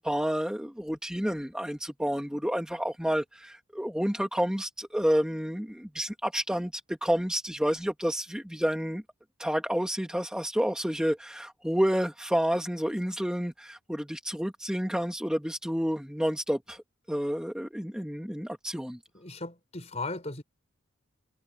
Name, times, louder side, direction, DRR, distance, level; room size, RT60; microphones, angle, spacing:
voice 1, 0.0-9.0 9.4-16.8 17.1-19.0, equal, 5° right, 1.3 m, -29 dB
voice 2, 19.1-20.4, left 3 dB, 30° left, 5.3 m, -37 dB
head